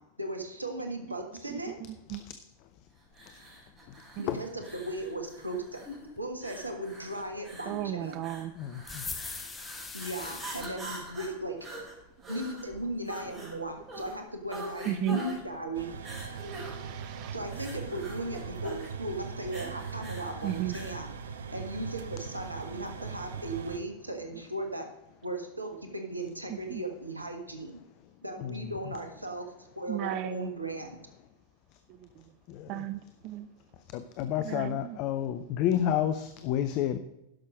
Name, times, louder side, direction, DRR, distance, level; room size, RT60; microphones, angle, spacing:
voice 1, 0.2-1.7 4.2-5.8 6.2-8.2 9.9-11.6 12.3-15.9 17.3-21.1 21.5-24.9 25.2-27.8 28.2-29.5 29.7-31.0, right 1 dB, 85° right, 4 dB, 1.4 m, -37 dB
sound 1, 3.1-21.0, right 1 dB, 20° right, 4.2 m, -44 dB
voice 2, 7.7-8.5 14.9-15.2 16.4-17.4 20.4-20.8 26.7-26.8 29.9-30.5 32.7-33.5 34.4-35.0, right 13 dB, 40° right, 12 dB, 0.4 m, -34 dB
voice 3, 8.6-9.1 28.4-28.7 32.5-32.9 33.9-37.0, left 10 dB, 40° left, 11 dB, 0.6 m, -30 dB
sound 2, 8.8-10.7, left 4 dB, 15° left, 1.0 m, -40 dB
sound 3, 15.7-23.8, right 6 dB, 65° right, 0.7 m, -40 dB
11.0 x 6.3 x 5.1 m, 0.92 s
figure-of-eight pair, 90°, 0 cm